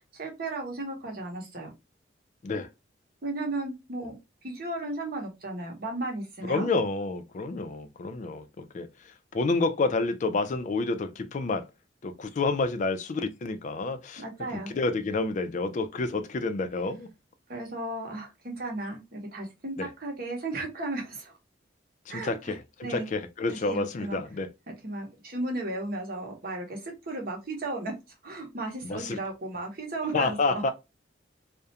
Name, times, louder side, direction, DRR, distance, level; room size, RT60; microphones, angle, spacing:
voice 1, 0.0-1.7 3.2-4.2 4.4-6.7 14.2-14.7 17.5-21.4 22.1-22.5 22.8-23.1 23.5-24.2 24.8-27.9 28.2-30.6, right 2 dB, 55° right, 0.9 m, -35 dB
voice 2, 6.5-8.9 9.3-11.6 12.0-14.2 14.5-17.1 19.8-19.9 22.1-24.5 28.8-29.2 30.1-30.7, left 3 dB, 40° left, 0.3 m, -29 dB
2.4 x 2.1 x 2.7 m
head